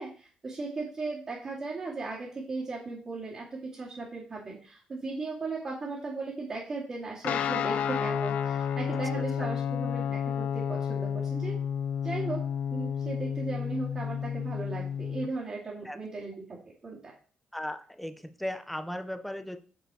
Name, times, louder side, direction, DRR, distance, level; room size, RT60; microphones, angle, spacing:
voice 1, 0.0-11.6 12.0-12.4 12.7-17.1, right 3 dB, 30° right, -8 dB, 2.2 m, -37 dB
Guitar, 7.2-15.3, left 8 dB, 60° left, 0.4 m, -31 dB
voice 2, 17.5-19.6, left 1 dB, 5° left, 9 dB, 0.5 m, -36 dB
7.8 x 4.7 x 4.8 m, 0.43 s
cardioid pair, 165°, 3 cm